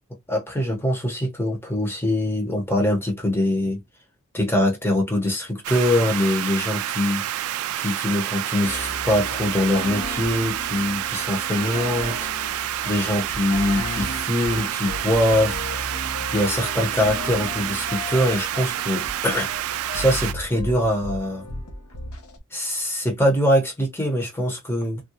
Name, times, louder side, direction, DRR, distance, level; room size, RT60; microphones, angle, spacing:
voice 1, 0.3-3.8 4.3-7.3 7.8-15.6 16.3-21.4 22.5-25.0, left 1 dB, 10° left, 0.9 m, -23 dB
sound 1, 5.6-20.3, right 12 dB, 75° right, 0.3 m, -28 dB
sound 2, 8.6-22.4, left 2 dB, 75° left, 0.9 m, -35 dB
3.6 x 2.2 x 2.8 m
head